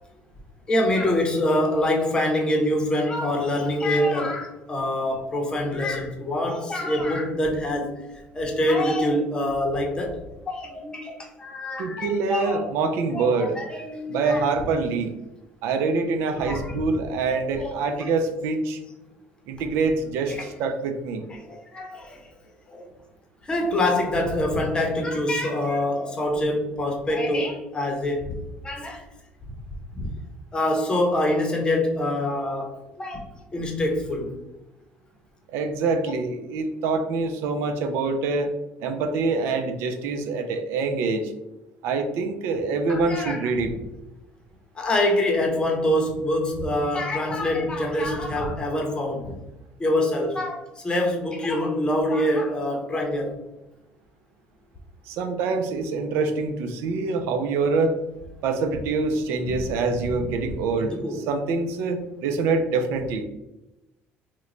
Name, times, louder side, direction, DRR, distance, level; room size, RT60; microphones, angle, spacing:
voice 1, 0.7-8.0 8.3-10.2 10.5-12.7 13.1-14.4 16.3-16.8 17.3-18.1 20.4-20.5 21.3-22.2 22.7-22.9 23.4-28.3 28.6-29.0 29.9-30.1 30.5-33.2 33.5-34.3 42.9-43.5 44.8-49.3 49.8-53.3 59.5-59.6 60.1-60.2 60.8-61.2, left 1 dB, 20° left, 0.7 m, -25 dB
voice 2, 11.8-13.6 14.1-15.1 15.6-18.8 19.5-21.3 35.5-38.5 38.8-41.3 41.8-43.7 55.1-58.0 58.4-63.2, right 4 dB, 80° right, 0.4 m, -25 dB
3.0 x 2.2 x 3.7 m
cardioid pair, 120°, 4 cm